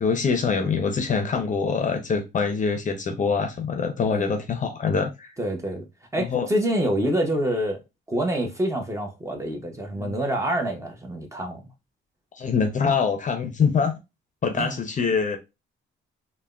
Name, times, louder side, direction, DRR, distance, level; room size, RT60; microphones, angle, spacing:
voice 1, 0.0-5.3 6.2-6.5 10.0-10.2 12.3-13.9 14.4-15.4, left 5 dB, 40° left, 0.5 m, -24 dB
voice 2, 5.4-5.8 6.1-7.8 8.1-11.6 14.6-14.8, right 1 dB, 15° right, 0.8 m, -26 dB
3.3 x 2.1 x 2.4 m
cardioid pair, 90°, 20 cm